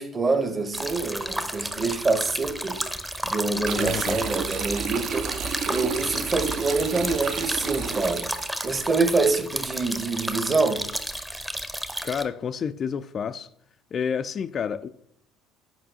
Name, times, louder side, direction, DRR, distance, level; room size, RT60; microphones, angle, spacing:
voice 1, 0.0-2.9 3.2-5.3 5.7-8.3 8.6-10.8, right 3 dB, 30° right, 0.9 m, -26 dB
sound 1, 0.7-12.2, equal, 5° right, 0.7 m, -32 dB
sound 2, 3.6-8.8, right 6 dB, 50° right, 0.6 m, -31 dB
voice 2, 3.8-4.2 12.0-13.5 13.9-14.9, left 7 dB, 40° left, 0.3 m, -29 dB
8.8 x 5.2 x 2.8 m
figure-of-eight pair, 60°, 0 cm